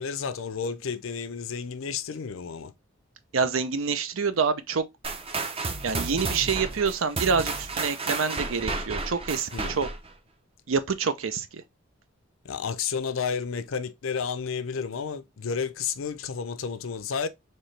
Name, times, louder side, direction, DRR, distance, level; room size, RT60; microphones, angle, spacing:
voice 1, 0.0-2.7 9.5-9.9 12.4-17.3, left 6 dB, 75° left, 0.5 m, -31 dB
voice 2, 3.3-4.8 5.8-9.9 10.7-11.6, right 5 dB, 70° right, 0.6 m, -27 dB
sound 1, 5.0-10.1, right 3 dB, 30° right, 0.6 m, -32 dB
4.4 x 3.2 x 3.2 m
head